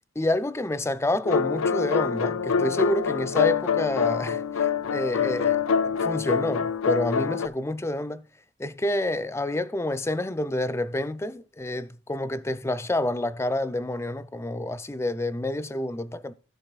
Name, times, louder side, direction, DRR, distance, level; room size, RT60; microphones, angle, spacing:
voice 1, 0.2-8.3 8.6-16.3, left 1 dB, 15° left, 0.4 m, -28 dB
sound 1, 1.2-7.5, left 6 dB, 90° left, 0.5 m, -25 dB
15.0 x 7.0 x 2.4 m
head